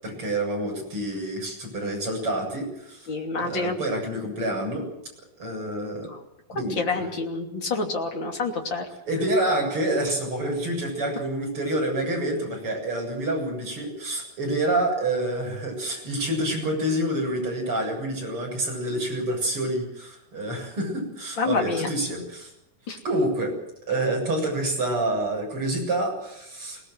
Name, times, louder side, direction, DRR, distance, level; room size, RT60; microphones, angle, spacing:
voice 1, 0.0-3.1 3.3-4.9 5.4-6.1 6.5-7.1 9.1-22.5 23.0-23.6 23.9-26.8, right 1 dB, 40° right, 0 dB, 8.3 m, -27 dB
voice 2, 3.1-3.8 6.1-6.2 6.5-8.9 21.4-21.9 22.9-23.0, left 3 dB, 35° left, 3 dB, 3.3 m, -28 dB
24.0 x 19.0 x 8.0 m, 0.82 s
omnidirectional pair, 3.9 m